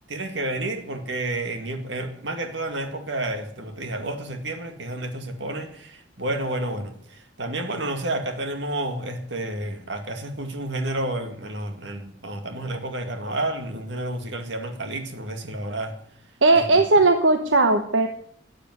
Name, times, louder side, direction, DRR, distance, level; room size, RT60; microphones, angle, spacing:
voice 1, 0.1-16.0 16.5-16.8, right 1 dB, 65° right, 2.2 m, -30 dB
voice 2, 16.4-18.1, right 3 dB, 80° right, 1.1 m, -17 dB
13.0 x 8.9 x 9.6 m
head